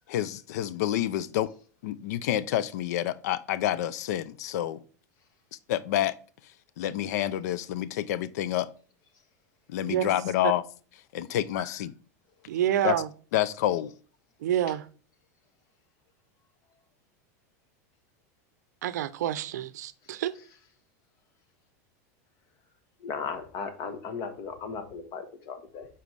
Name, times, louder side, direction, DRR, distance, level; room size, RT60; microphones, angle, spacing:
voice 1, 0.1-1.5 1.8-4.8 5.7-6.1 6.8-8.7 9.7-10.6 11.1-11.9 12.8-13.0 13.3-13.9, left 12 dB, 75° left, 0.4 m, -28 dB
voice 2, 12.5-13.1 14.4-14.9 18.8-20.4, right 11 dB, 85° right, 0.5 m, -28 dB
voice 3, 23.0-25.9, left 5 dB, 45° left, 1.2 m, -36 dB
7.2 x 4.3 x 3.2 m
supercardioid pair, 120°, 9 cm